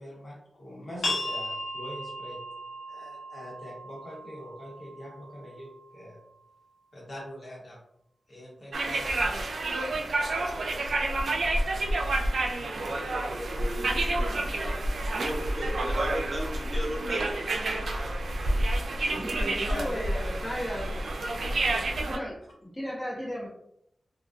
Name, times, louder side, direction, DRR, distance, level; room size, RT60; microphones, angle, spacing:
voice 1, 0.0-2.4 2.9-6.2 6.9-7.8 8.3-9.4 19.1-22.0, equal, 55° left, -5 dB, 1.0 m, -42 dB
sound 1, 1.0-6.4, left 1 dB, 80° left, 0.9 m, -37 dB
sound 2, 8.7-22.2, right 2 dB, 80° right, 0.3 m, -29 dB
voice 2, 13.1-14.8 15.1-18.5 19.0-19.5, right 1 dB, 30° right, -1 dB, 0.6 m, -37 dB
voice 3, 19.6-21.1 22.1-23.5, equal, 30° left, -5 dB, 0.9 m, -35 dB
2.5 x 2.2 x 2.3 m, 0.74 s
wide cardioid pair, 85°, 0 cm